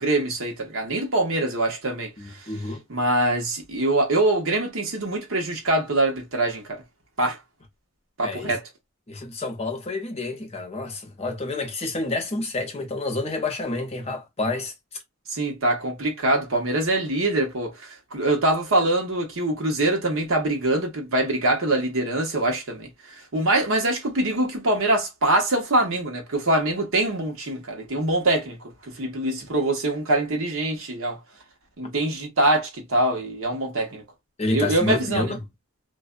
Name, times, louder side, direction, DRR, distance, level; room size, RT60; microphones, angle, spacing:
voice 1, 0.0-2.1 2.9-6.8 7.2-7.4 8.2-8.6 15.3-22.9 23.3-31.2 31.8-34.0 34.5-35.4, right 2 dB, 70° right, 1.0 m, -24 dB
voice 2, 2.2-2.8 8.2-8.5 9.1-14.7 34.4-35.4, left 2 dB, 30° left, 0.6 m, -29 dB
2.5 x 2.1 x 2.3 m
head